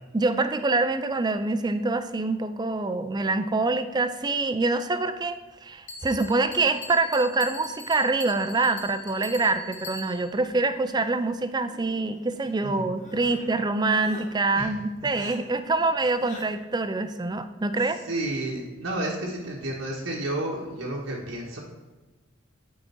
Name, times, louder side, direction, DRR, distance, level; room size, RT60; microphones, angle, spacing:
voice 1, 0.1-18.0, right 3 dB, 20° right, 10 dB, 0.4 m, -25 dB
Bell, 5.9-10.4, left 4 dB, 55° left, 1.1 m, -42 dB
sound 1, 11.6-12.4 13.0-13.5 14.0-14.3 15.1-15.4 16.2-16.5, left 3 dB, 40° left, 1.3 m, -44 dB
voice 2, 18.0-21.6, right 1 dB, 80° right, -3 dB, 1.5 m, -31 dB
9.0 x 4.8 x 4.4 m, 1.2 s
head